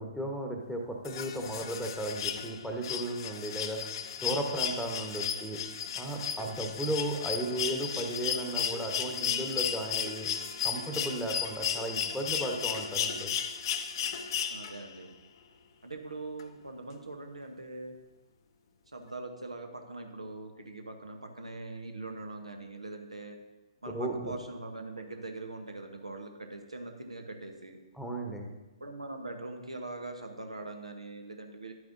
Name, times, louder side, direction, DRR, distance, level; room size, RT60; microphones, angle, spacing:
voice 1, 0.0-3.8 4.2-5.6 6.0-10.3 10.6-13.3 23.9-24.4 27.9-28.5, right 1 dB, ahead, 1 dB, 1.0 m, -35 dB
sound 1, 1.0-15.0 16.4-16.5, left 8 dB, 45° left, 0.6 m, -34 dB
voice 2, 14.5-15.1 15.8-17.9 18.9-23.4 23.8-27.8 28.8-31.7, right 2 dB, 85° right, 5 dB, 1.0 m, -42 dB
10.5 x 9.3 x 2.6 m, 1.1 s
figure-of-eight pair, 125°, 3 cm